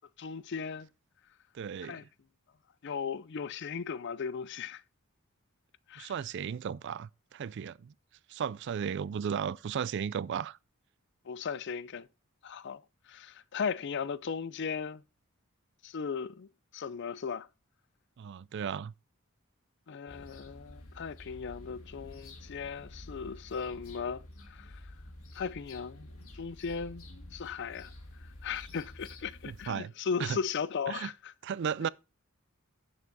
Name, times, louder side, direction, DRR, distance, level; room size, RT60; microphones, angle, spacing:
voice 1, 0.2-0.9 1.8-2.0 2.8-4.8 5.9-6.1 11.3-12.1 12.4-12.8 13.1-15.0 15.8-16.5 16.7-17.5 19.9-24.2 24.5-24.7 25.3-26.1 26.3-27.1 27.3-27.9 28.4-31.3, left 6 dB, 55° left, 0.4 m, -37 dB
voice 2, 1.5-2.0 6.0-7.9 8.3-10.6 18.2-18.9 29.5-29.9 30.2-30.4 30.9-31.1 31.4-31.9, right 7 dB, 55° right, 0.3 m, -35 dB
sound 1, 20.1-29.7, left 1 dB, 75° left, 1.9 m, -49 dB
8.4 x 7.1 x 4.0 m
head